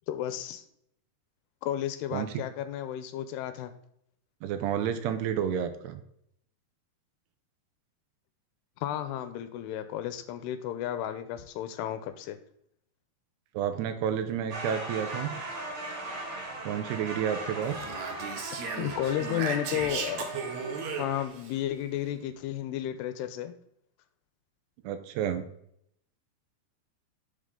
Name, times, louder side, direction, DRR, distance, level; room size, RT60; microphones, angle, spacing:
voice 1, 0.1-0.6 1.6-3.7 8.8-12.4 18.8-20.3 21.0-23.6, left 11 dB, 85° left, 10 dB, 2.7 m, -33 dB
voice 2, 2.1-2.4 4.4-6.0 13.5-15.3 16.6-17.9 24.8-25.5, right 9 dB, 85° right, 9 dB, 2.9 m, -30 dB
sound 1, 14.5-21.3, right 2 dB, 50° right, 3.9 m, -39 dB
Speech, 17.6-21.5, right 5 dB, 70° right, 1.8 m, -36 dB
11.5 x 7.1 x 3.8 m, 0.72 s
omnidirectional pair, 4.8 m